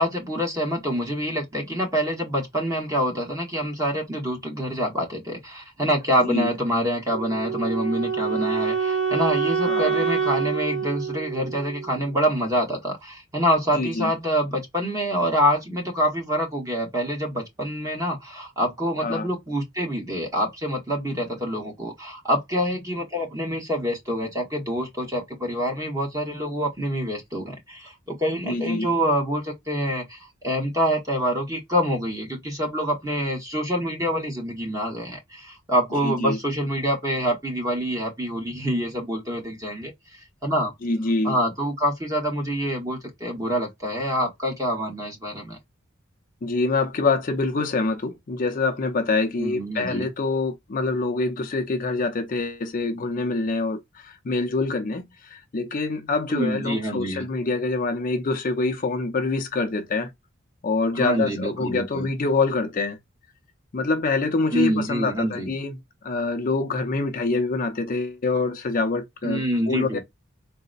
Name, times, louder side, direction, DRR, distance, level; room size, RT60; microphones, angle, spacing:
voice 1, 0.0-39.9 40.4-40.7 41.2-45.6 49.4-50.1 56.3-57.3 60.9-62.1 64.5-65.5 69.2-70.0, equal, 15° right, 1.1 m, -26 dB
Wind instrument woodwind instrument, 7.1-12.2, right 6 dB, 60° right, 0.7 m, -26 dB
voice 2, 9.7-10.0 13.7-14.1 19.0-19.3 28.5-28.9 36.0-36.4 40.8-41.4 46.4-60.1 60.6-63.0 63.7-70.0, left 3 dB, 40° left, 0.5 m, -25 dB
3.9 x 2.0 x 2.4 m
head